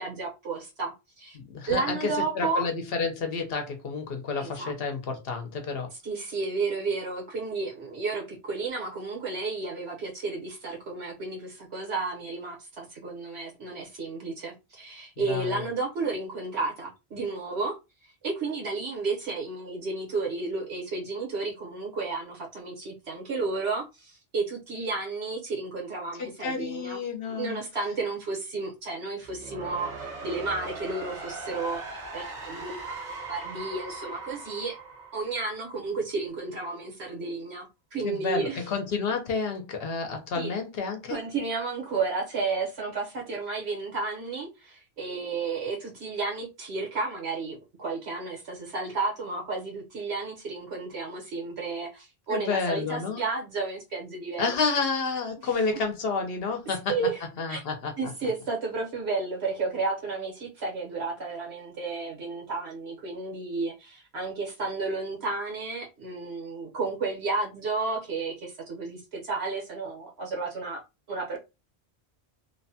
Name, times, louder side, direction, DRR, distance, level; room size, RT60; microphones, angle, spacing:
voice 1, 0.0-1.4 1.7-2.7 4.4-4.7 6.0-17.8 18.2-27.0 27.3-34.8 35.1-38.7 40.3-40.5 41.1-54.5 56.7-57.2 57.5-57.6 58.0-70.8 71.1-71.4, right 3 dB, 80° right, 1.3 m, -32 dB
voice 2, 1.3-5.9 15.3-15.7 26.2-27.6 38.0-41.2 52.3-53.2 54.4-56.9 57.4-58.1, left 4 dB, 70° left, 0.9 m, -30 dB
sound 1, 29.2-36.1, right 3 dB, 45° right, 0.8 m, -40 dB
2.9 x 2.1 x 2.7 m
omnidirectional pair, 1.1 m